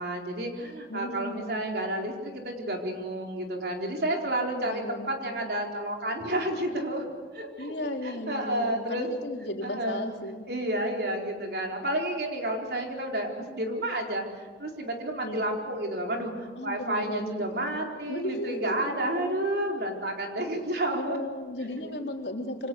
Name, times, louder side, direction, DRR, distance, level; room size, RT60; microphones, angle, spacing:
voice 1, 0.0-7.1 7.3-9.1 9.6-10.1 10.5-21.3 21.6-21.7, right 1 dB, 60° right, 1 dB, 4.4 m, -31 dB
voice 2, 0.9-1.6 4.4-5.4 7.6-10.4 15.2-15.4 16.6-17.7 18.1-19.5 20.9-22.7, left 1 dB, 70° left, 2 dB, 3.5 m, -35 dB
27.0 x 25.5 x 8.0 m, 1.5 s
head